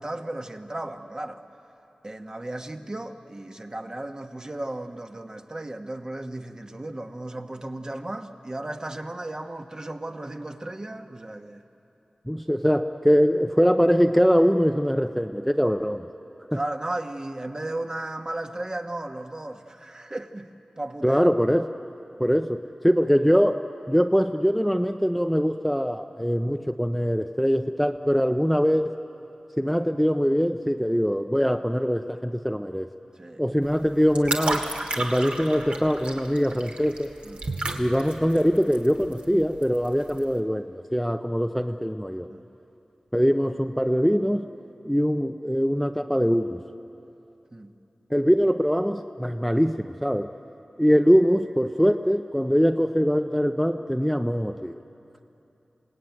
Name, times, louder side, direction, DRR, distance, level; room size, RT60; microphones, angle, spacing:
voice 1, 0.0-1.4 2.0-11.6 16.5-20.5 20.8-21.2 33.1-33.4 37.2-37.4 42.3-42.4 47.5-47.7, right 1 dB, 30° right, 5 dB, 1.3 m, -35 dB
voice 2, 12.3-16.1 16.5-16.6 21.0-21.6 22.2-29.0 29.6-32.9 33.4-34.7 35.0-37.1 37.8-42.3 43.1-44.5 44.8-46.6 48.1-50.3 50.8-54.8, equal, ahead, 6 dB, 0.6 m, -22 dB
sound 1, 33.6-40.4, right 2 dB, 60° right, 2.3 m, -33 dB
28.0 x 18.0 x 9.3 m, 2.9 s
wide cardioid pair, 80°, 2 cm